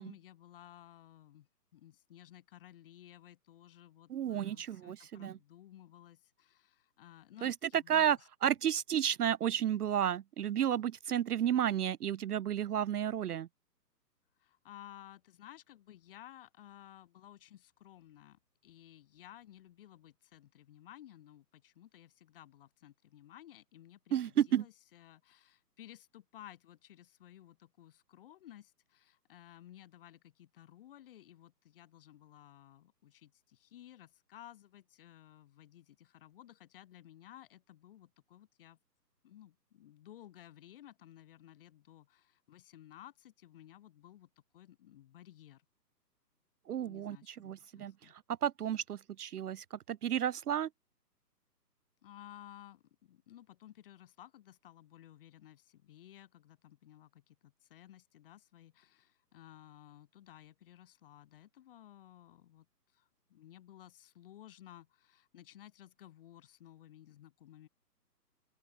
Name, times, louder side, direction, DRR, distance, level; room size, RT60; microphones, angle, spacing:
voice 1, 0.0-8.5 14.4-38.8 39.2-45.6 46.8-48.1 52.0-62.7 62.9-67.7, left 12 dB, 35° left, 6.4 m, -56 dB
voice 2, 4.1-5.4 7.4-8.2 8.4-13.5 24.1-24.6 46.7-48.1 48.4-50.7, right 10 dB, 65° right, 0.5 m, -32 dB
open air
hypercardioid pair, 160°, 50 cm